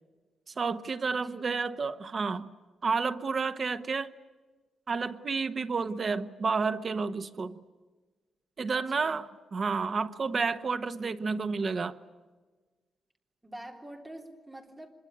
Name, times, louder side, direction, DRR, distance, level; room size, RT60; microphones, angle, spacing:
voice 1, 0.6-2.5 2.8-4.1 4.9-7.6 8.6-12.0, right 4 dB, 30° right, 11 dB, 1.0 m, -30 dB
voice 2, 8.7-9.2 13.4-14.9, right 1 dB, 10° right, 3 dB, 3.2 m, -46 dB
25.5 x 22.5 x 9.8 m, 1.3 s
wide cardioid pair, 165°, 0 cm